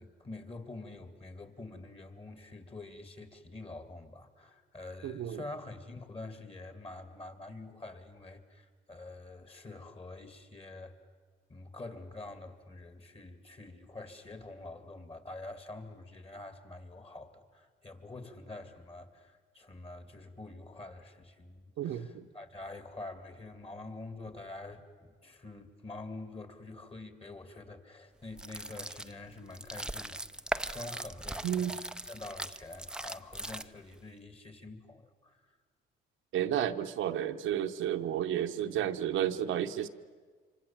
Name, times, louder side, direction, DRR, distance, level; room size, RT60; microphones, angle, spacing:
voice 1, 0.0-10.9 11.5-30.2 30.7-35.6, left 2 dB, 30° left, 8 dB, 2.6 m, -46 dB
voice 2, 5.0-5.4 21.8-22.3 31.4-31.7 36.3-39.9, right 10 dB, 80° right, 6 dB, 1.0 m, -32 dB
sound 1, 28.3-34.0, right 1 dB, 5° right, 0.6 m, -39 dB
26.0 x 25.0 x 7.4 m, 1.5 s
cardioid pair, 90°, 20 cm